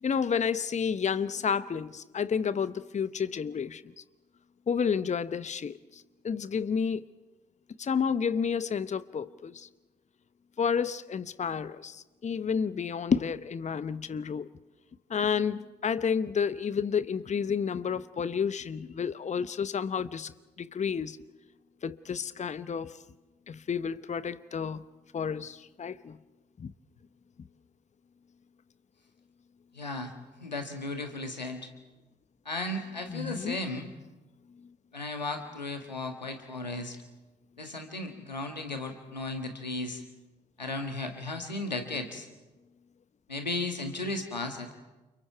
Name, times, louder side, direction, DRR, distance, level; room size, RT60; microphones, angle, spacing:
voice 1, 0.0-3.8 4.7-7.1 7.8-9.7 10.6-14.5 15.1-20.3 20.6-21.2 21.8-23.0 23.5-24.8 25.1-26.2 26.6-26.7 33.1-33.6, left 6 dB, 35° left, 1.0 m, -30 dB
voice 2, 29.7-30.1 30.4-31.7 32.4-33.9 34.9-37.0 37.6-40.0 40.6-42.3 43.3-44.7, left 2 dB, 90° left, 1.7 m, -35 dB
29.5 x 29.0 x 4.7 m
figure-of-eight pair, 40°, 21 cm